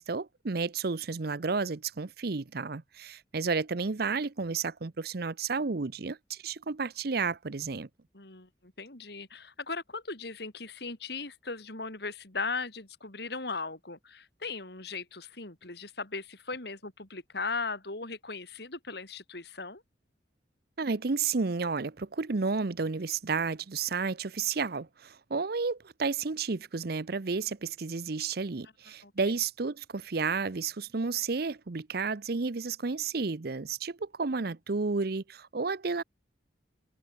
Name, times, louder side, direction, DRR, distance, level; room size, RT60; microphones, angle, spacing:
voice 1, 0.0-7.9 20.8-36.0, right 4 dB, 55° right, 0.7 m, -32 dB
voice 2, 8.1-19.8 29.0-29.1, left 4 dB, 60° left, 3.5 m, -38 dB
head